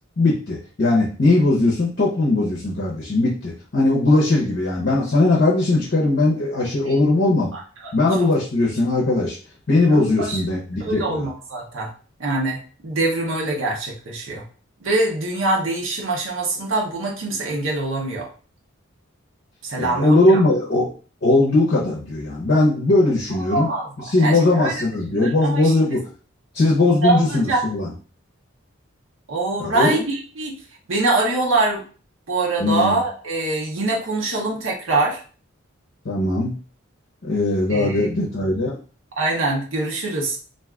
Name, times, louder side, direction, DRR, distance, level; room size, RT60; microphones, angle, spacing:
voice 1, 0.2-7.5 7.9-9.4 9.7-11.3 19.8-20.9 21.2-23.7 24.1-26.1 26.5-27.9 29.6-30.0 32.6-33.0 36.0-36.6 37.2-38.7, left 2 dB, 55° left, -5 dB, 0.7 m, -19 dB
voice 2, 7.5-7.9 8.2-8.3 9.9-10.4 10.8-11.9 12.2-14.4 14.8-18.3 19.6-20.4 23.5-23.9 24.2-24.9 25.1-25.7 27.0-27.6 29.3-30.6 30.9-31.8 32.3-35.2 37.7-38.1 39.2-40.4, right 2 dB, 70° right, -1 dB, 0.7 m, -24 dB
2.5 x 2.3 x 3.5 m, 0.39 s
head